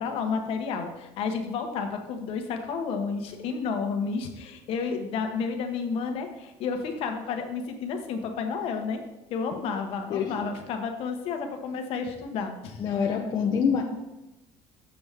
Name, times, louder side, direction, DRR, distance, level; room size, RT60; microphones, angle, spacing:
voice 1, 0.0-9.0 9.3-12.8, left 5 dB, 55° left, 5 dB, 1.0 m, -31 dB
voice 2, 10.1-10.5 12.8-13.8, left 6 dB, 40° left, 0 dB, 0.6 m, -26 dB
7.0 x 6.9 x 3.5 m, 0.96 s
cardioid pair, 165°, 11 cm